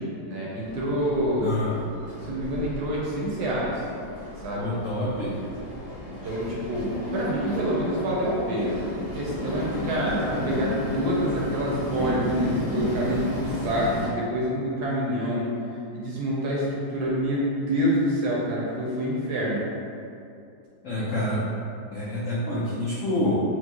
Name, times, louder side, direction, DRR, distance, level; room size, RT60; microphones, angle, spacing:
voice 1, 0.0-1.5 2.2-3.8 4.4-4.7 6.0-15.5 15.9-19.6, equal, 70° right, -5 dB, 1.0 m, -27 dB
Train, 0.6-14.1, left 1 dB, 50° left, 1.3 m, -33 dB
voice 2, 1.4-1.8 4.5-5.4 20.8-21.4 21.9-23.4, left 1 dB, 80° left, -8 dB, 0.7 m, -27 dB
4.6 x 2.0 x 2.9 m, 2.5 s
omnidirectional pair, 2.0 m